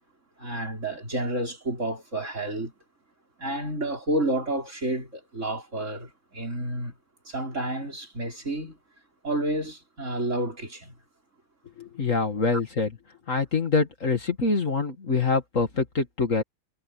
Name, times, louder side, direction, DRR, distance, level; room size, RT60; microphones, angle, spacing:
voice 1, 0.4-2.7 3.4-7.0 7.2-8.8 9.2-11.0 12.5-12.6, right 1 dB, 45° right, 6.0 m, -30 dB
voice 2, 11.8-12.9 13.3-16.4, left 4 dB, 50° left, 2.4 m, -25 dB
omnidirectional pair, 1.7 m